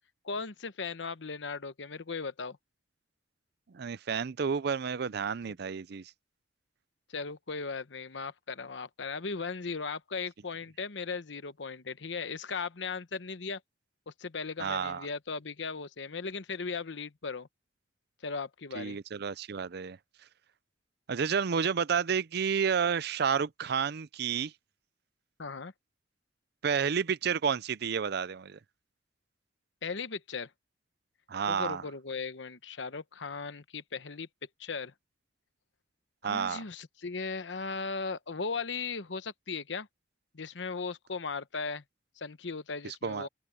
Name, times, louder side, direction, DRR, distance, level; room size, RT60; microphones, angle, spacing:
voice 1, 0.2-2.6 7.1-13.6 14.1-17.5 18.2-19.0 25.4-25.7 29.8-30.5 31.5-34.3 34.6-34.9 36.2-39.9 40.3-41.8 42.2-43.3, left 4 dB, 85° left, 1.0 m, -37 dB
voice 2, 3.7-6.1 14.6-15.1 18.7-20.0 21.1-24.5 26.6-28.6 31.3-31.8 36.2-36.6 42.8-43.3, right 6 dB, 60° right, 0.5 m, -30 dB
open air
head